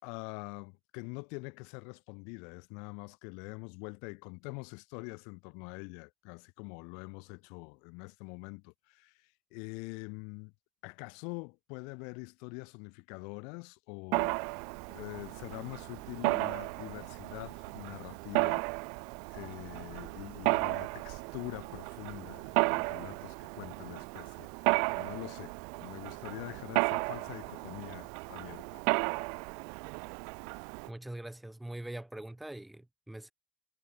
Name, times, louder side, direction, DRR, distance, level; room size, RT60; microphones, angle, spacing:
voice 1, 0.0-10.5 10.8-14.4 14.9-18.7 19.3-28.8, left 36 dB, 70° left, 4.4 m, -45 dB
Mechanisms, 14.1-30.9, right 37 dB, 70° right, 0.8 m, -34 dB
voice 2, 30.9-33.3, right 1 dB, 10° right, 2.7 m, -43 dB
figure-of-eight pair, 50°, 0 cm